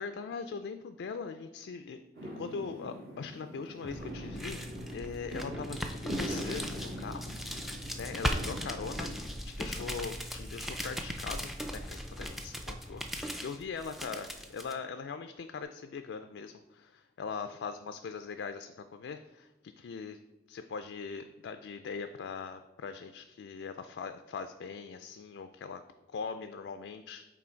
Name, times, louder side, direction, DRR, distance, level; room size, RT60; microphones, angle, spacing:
voice 1, 0.0-2.0 2.4-4.6 4.9-7.3 8.0-9.1 9.5-20.2 20.5-25.8 26.1-27.3, left 5 dB, 90° left, 8 dB, 0.3 m, -41 dB
Fireworks, 2.1-9.2, equal, 60° right, 1.6 m, -42 dB
sound 1, 3.9-14.7, equal, ahead, 0.3 m, -38 dB
6.1 x 3.8 x 4.4 m, 1.0 s
head